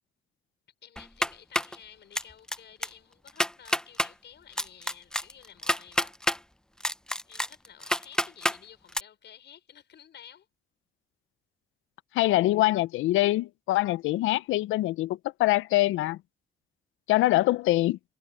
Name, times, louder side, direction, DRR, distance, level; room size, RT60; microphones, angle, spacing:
voice 1, 0.8-6.2 7.3-10.5, left 9 dB, 60° left, 5.9 m, -52 dB
sound 1, 1.0-1.8 2.1-2.6 2.8-2.9 3.3-4.1 4.6-6.4 6.8-8.6 8.9-9.0, left 1 dB, 5° left, 0.8 m, -28 dB
voice 2, 12.1-16.2 17.1-18.0, left 17 dB, 85° left, 0.6 m, -24 dB
cardioid pair, 90°, 20 cm